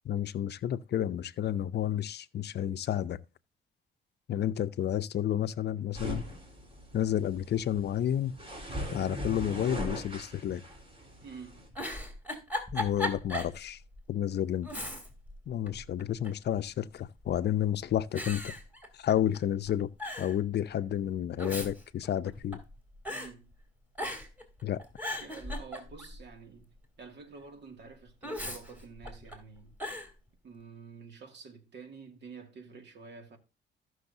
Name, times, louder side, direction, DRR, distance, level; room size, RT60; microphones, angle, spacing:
voice 1, 0.0-3.2 4.3-6.3 6.9-8.3 8.9-10.6 12.7-13.8 14.1-14.7 15.5-18.5 18.9-19.9 20.2-22.6 24.6-24.8, left 10 dB, 55° left, 0.6 m, -31 dB
sound 1, 5.9-11.7, equal, 30° right, 3.8 m, -40 dB
voice 2, 11.2-11.7 23.1-23.5 25.2-26.7 27.0-29.8 30.4-33.4, right 5 dB, 60° right, 2.3 m, -49 dB
Giggle, 11.7-13.6 14.0-14.1 14.6-15.3 15.7-16.5 17.2-17.6 18.2-19.4 19.7-19.8 20.0-20.4 21.2-22.7 23.1-23.3 24.0-24.4 24.8-26.2 28.2-29.4 29.8-30.1, left 1 dB, 10° right, 3.0 m, -37 dB
15.0 x 6.3 x 2.7 m
cardioid pair, 90°, 20 cm